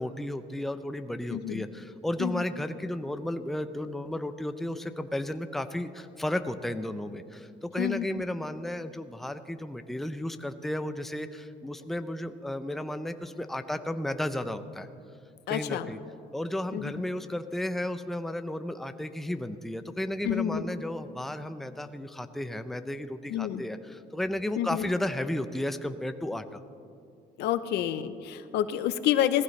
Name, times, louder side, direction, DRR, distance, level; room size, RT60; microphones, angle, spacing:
voice 1, 0.0-14.9 15.5-16.0 16.3-26.4, left 1 dB, ahead, 9 dB, 0.5 m, -33 dB
voice 2, 1.3-1.6 2.2-2.4 7.8-8.1 15.5-15.9 16.7-16.9 20.2-20.7 23.3-23.6 24.6-24.9 27.4-29.4, left 11 dB, 80° left, 12 dB, 0.7 m, -28 dB
18.5 x 15.0 x 3.2 m, 2.4 s
cardioid pair, 110°, 17 cm